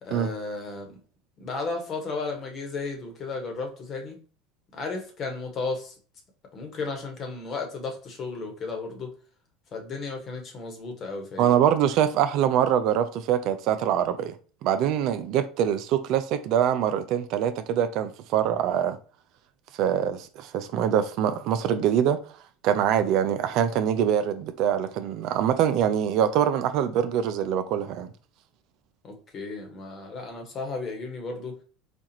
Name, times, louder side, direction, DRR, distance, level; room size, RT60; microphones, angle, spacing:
voice 1, 0.0-1.0 1.4-4.2 4.7-5.9 6.5-9.1 9.7-11.5 29.0-31.5, left 3 dB, 45° left, 1.3 m, -34 dB
voice 2, 11.4-14.3 14.6-19.0 19.8-22.2 22.6-28.1, right 9 dB, 60° right, 0.4 m, -24 dB
4.2 x 2.4 x 2.9 m
hypercardioid pair, 90°, 0 cm